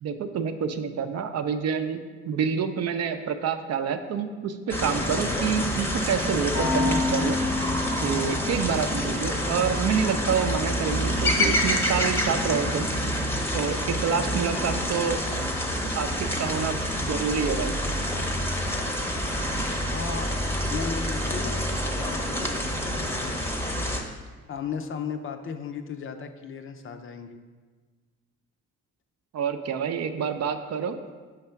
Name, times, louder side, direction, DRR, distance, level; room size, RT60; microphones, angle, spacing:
voice 1, 0.0-2.0 2.2-7.4 8.0-12.9 13.5-15.2 15.9-17.7 29.3-31.0, right 6 dB, 60° right, 8 dB, 0.5 m, -27 dB
sound 1, 4.7-24.0, equal, 10° left, 0.7 m, -27 dB
Piano, 6.5-17.6, left 3 dB, 85° left, 0.9 m, -36 dB
voice 2, 19.9-20.4 20.7-21.6 21.9-23.4 24.5-27.4, left 6 dB, 45° left, 7 dB, 0.5 m, -36 dB
5.8 x 3.3 x 5.6 m, 1.4 s
cardioid pair, 90°, 30 cm